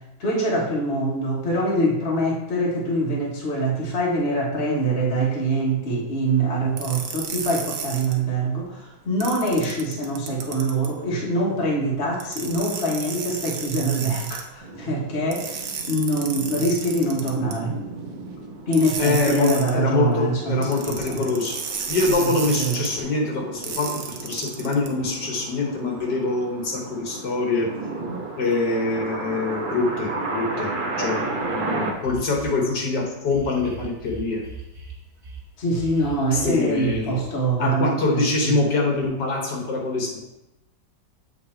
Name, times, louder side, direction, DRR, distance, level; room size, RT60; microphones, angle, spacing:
voice 1, 0.2-8.8 9.0-17.7 18.7-21.3 22.2-22.3 22.6-22.8 35.6-38.5, right 1 dB, 40° left, -3 dB, 1.3 m, -24 dB
sound 1, 6.8-8.1 9.2-10.9 12.2-14.4 15.3-17.5 18.7-19.7 20.6-22.9 23.6-24.9, right 6 dB, 75° right, 1.4 m, -33 dB
sound 2, 14.6-31.9, right 3 dB, 55° right, 0.6 m, -34 dB
voice 2, 19.0-21.6 21.9-27.7 28.4-30.7 31.0-34.4 36.3-37.2 37.6-40.2, left 3 dB, 70° left, -1 dB, 1.7 m, -24 dB
sound 3, 31.4-31.5 32.0-32.6 33.2-35.4 35.7-37.2, right 3 dB, 25° right, 1.2 m, -39 dB
7.5 x 3.5 x 4.3 m, 0.90 s
omnidirectional pair, 2.0 m